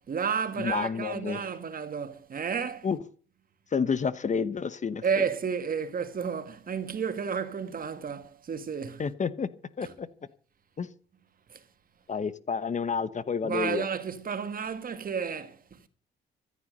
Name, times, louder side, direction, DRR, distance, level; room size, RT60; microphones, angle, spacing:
voice 1, 0.0-2.9 5.0-9.0 9.8-9.9 11.5-11.6 13.4-15.8, right 6 dB, 45° right, 1.9 m, -32 dB
voice 2, 0.6-1.4 2.8-3.0 3.7-5.2 9.0-9.5 9.8-10.1 10.8-10.9 12.1-13.9, left 6 dB, 35° left, 1.1 m, -30 dB
14.5 x 10.5 x 6.7 m
cardioid pair, 90°, 20 cm